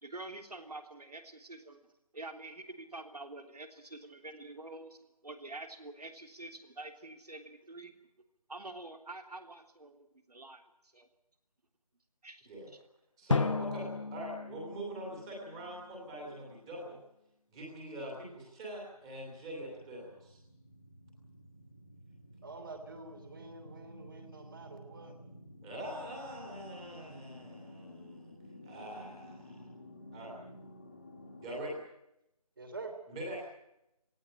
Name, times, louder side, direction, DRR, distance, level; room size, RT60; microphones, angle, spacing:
voice 1, 0.0-1.8 2.1-5.0 5.2-8.0 8.5-10.6 10.9-11.1 12.2-12.8, right 2 dB, 80° right, 6 dB, 3.4 m, -47 dB
voice 2, 13.2-17.0 17.5-20.4 25.6-28.3 28.6-29.7 30.1-30.4 31.4-31.8 33.1-33.4, right 1 dB, 10° right, -2 dB, 2.7 m, -43 dB
Drum, 13.3-16.0, left 3 dB, 50° left, 0.9 m, -35 dB
sound 1, 18.9-31.5, left 1 dB, 25° left, 2.1 m, -53 dB
voice 3, 22.4-25.1 32.6-32.9, right 3 dB, 35° right, 5 dB, 3.0 m, -47 dB
18.0 x 16.5 x 10.0 m, 0.85 s
figure-of-eight pair, 175°, 20 cm